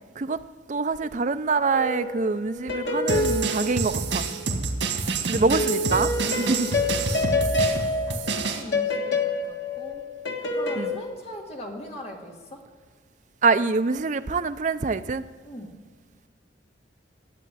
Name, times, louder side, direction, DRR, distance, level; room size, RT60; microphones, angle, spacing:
voice 1, 0.7-4.2 5.3-6.7 10.8-10.9 13.4-15.2, right 4 dB, 45° right, 11 dB, 0.5 m, -25 dB
sound 1, 1.7-4.6 5.5-10.9, left 2 dB, 85° left, 1.6 m, -28 dB
sound 2, 3.1-8.6, right 4 dB, 90° right, 1.8 m, -28 dB
voice 2, 5.1-6.5 8.1-10.1 10.5-12.6 15.4-15.7, left 1 dB, 35° left, 0 dB, 2.0 m, -40 dB
11.5 x 8.5 x 8.6 m, 1.5 s
head